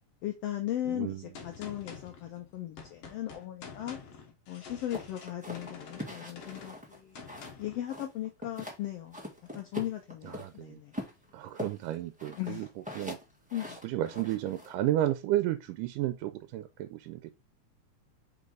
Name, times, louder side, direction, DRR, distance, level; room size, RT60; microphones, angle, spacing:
voice 1, 0.2-4.0 4.5-9.2 9.5-11.0 12.4-12.6 13.5-13.8, left 13 dB, 80° left, 1.4 m, -37 dB
voice 2, 0.9-1.3 10.2-10.8 11.3-12.7 13.0-13.2 13.8-17.3, right 13 dB, 90° right, 2.2 m, -32 dB
Gunshot gunfire, 1.3-7.8, left 5 dB, 55° left, 2.0 m, -48 dB
sound 1, 4.9-7.6 7.9-8.8 9.1-10.5 10.9-14.7, left 1 dB, 10° right, 0.4 m, -42 dB
5.1 x 4.7 x 3.9 m
omnidirectional pair, 3.7 m